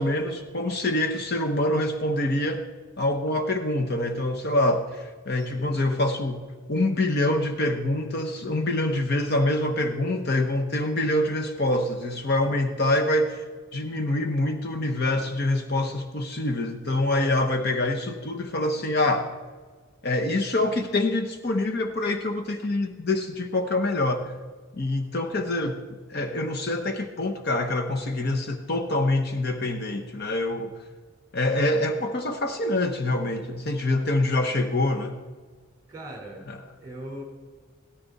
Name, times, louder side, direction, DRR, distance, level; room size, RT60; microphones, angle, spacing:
voice 1, 0.0-2.6 3.0-6.4 6.7-13.4 13.7-19.3 20.0-24.3 24.7-25.8 26.1-30.7 31.3-35.2 36.5-36.6, left 1 dB, 45° left, 5 dB, 0.8 m, -25 dB
voice 2, 5.4-5.7 17.5-17.8 35.9-36.4 36.8-37.2, right 1 dB, 15° right, 0 dB, 3.8 m, -40 dB
17.0 x 13.5 x 4.1 m, 1.5 s
head